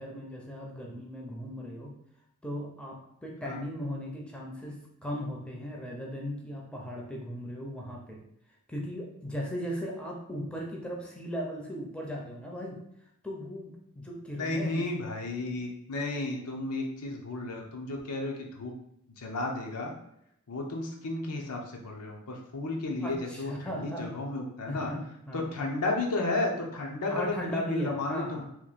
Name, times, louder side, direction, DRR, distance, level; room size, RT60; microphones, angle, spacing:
voice 1, 0.0-1.9 2.4-8.2 8.7-12.8 13.2-14.9 23.0-24.1 24.7-25.5 27.1-28.4, equal, 5° left, -2 dB, 0.5 m, -37 dB
voice 2, 14.3-18.7 19.2-19.9 20.5-24.9 25.3-28.4, left 2 dB, 85° left, 1 dB, 0.7 m, -33 dB
3.0 x 2.6 x 4.0 m, 0.78 s
head